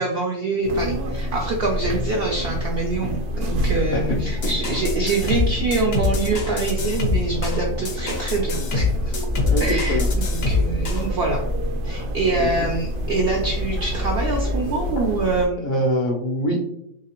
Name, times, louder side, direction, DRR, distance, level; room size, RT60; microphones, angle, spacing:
voice 1, 0.0-9.1 9.6-11.4 11.8-15.7, right 3 dB, 75° right, 0 dB, 0.5 m, -25 dB
sound 1, 0.6-15.5, equal, 90° right, 1.1 m, -27 dB
sound 2, 4.4-11.1, left 4 dB, 55° left, 0.8 m, -26 dB
sound 3, 9.3-14.7, left 1 dB, 20° right, 0.3 m, -29 dB
voice 2, 9.5-10.1 12.4-12.5 15.6-16.6, equal, 75° left, -1 dB, 0.4 m, -23 dB
3.2 x 2.8 x 2.8 m, 0.79 s
omnidirectional pair, 1.5 m